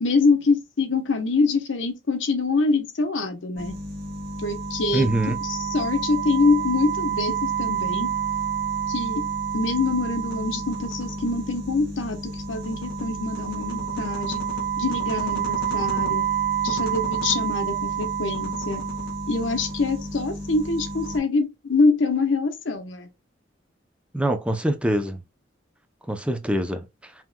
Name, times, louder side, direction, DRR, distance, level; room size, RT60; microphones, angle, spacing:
voice 1, 0.0-3.7 4.4-5.1 5.4-8.1 8.9-9.2 9.5-14.4 14.8-16.2 16.6-18.8 19.3-23.1, left 3 dB, 80° left, 0.9 m, -25 dB
sound 1, 3.6-21.2, right 6 dB, 55° right, 1.7 m, -29 dB
voice 2, 4.9-5.4 24.1-25.2 26.1-27.1, right 1 dB, 5° right, 0.6 m, -24 dB
5.7 x 3.0 x 2.2 m
head